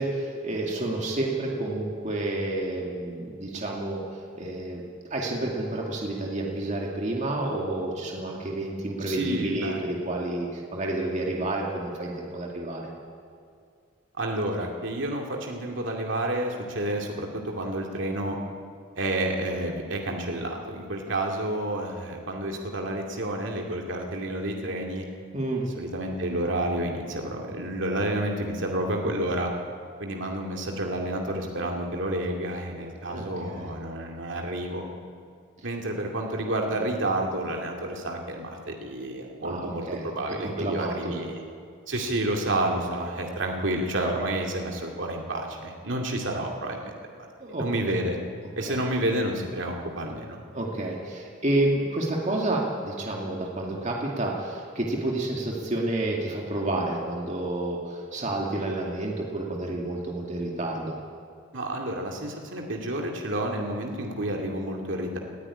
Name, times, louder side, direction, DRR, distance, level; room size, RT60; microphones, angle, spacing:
voice 1, 0.0-4.0 4.3-4.8 5.1-12.9 25.3-25.7 33.1-33.7 39.4-40.1 40.4-41.1 47.4-47.7 48.6-48.8 50.5-60.9, right 2 dB, 35° right, -2 dB, 2.4 m, -30 dB
voice 2, 9.0-9.8 14.2-18.4 19.0-25.1 25.7-29.5 30.0-34.8 35.6-41.4 41.9-47.3 47.6-48.2 48.6-50.4 61.5-65.2, right 1 dB, 65° right, 1 dB, 2.4 m, -30 dB
19.5 x 13.5 x 9.9 m, 2.2 s
head